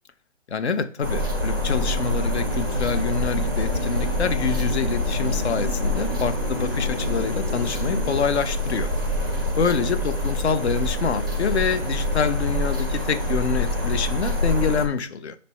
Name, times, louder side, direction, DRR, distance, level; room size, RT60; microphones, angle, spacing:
voice 1, 0.5-8.9 9.6-15.4, left 5 dB, 60° left, 0.5 m, -26 dB
sound 1, 1.0-14.9, left 1 dB, 20° right, 0.4 m, -26 dB
sound 2, 1.5-8.2, left 3 dB, 20° left, 0.8 m, -34 dB
3.3 x 2.1 x 4.2 m
figure-of-eight pair, 145°, 37 cm